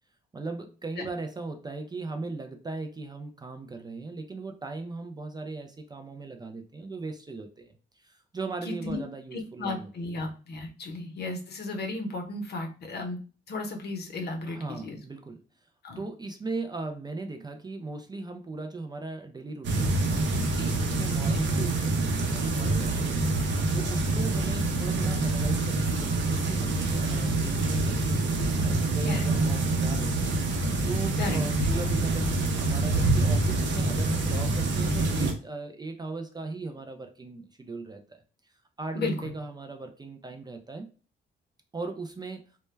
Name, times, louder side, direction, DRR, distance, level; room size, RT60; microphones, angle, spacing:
voice 1, 0.3-7.7 8.0-9.9 14.5-15.4 16.0-20.2 20.8-23.3 23.7-28.2 28.6-30.3 30.9-38.2 38.8-40.9 41.7-42.5, right 3 dB, 20° right, 5 dB, 0.4 m, -38 dB
voice 2, 8.7-9.0 9.3-13.2 13.5-15.0 15.8-16.0 20.6-20.8 29.0-29.3 31.2-31.7 38.9-39.3, left 3 dB, 55° left, 3 dB, 0.7 m, -34 dB
sound 1, 19.6-35.3, right 2 dB, 65° right, 0.6 m, -26 dB
2.2 x 2.1 x 3.1 m, 0.36 s
cardioid pair, 90°, 20 cm